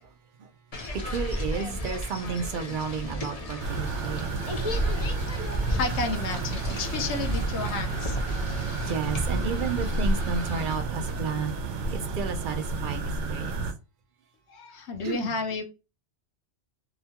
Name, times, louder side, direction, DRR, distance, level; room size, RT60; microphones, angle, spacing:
sound 1, 0.7-10.8, equal, 40° left, 0.6 m, -33 dB
voice 1, 0.9-4.3 8.8-11.6 11.9-13.6 15.0-15.4, right 6 dB, 60° right, 0.6 m, -32 dB
sound 2, 2.8-13.3, right 7 dB, 40° right, 0.9 m, -46 dB
sound 3, 3.6-13.7, right 3 dB, 85° right, 0.9 m, -31 dB
voice 2, 5.7-8.2 14.5-15.6, left 4 dB, 75° left, 0.9 m, -31 dB
2.9 x 2.2 x 2.7 m
omnidirectional pair, 1.2 m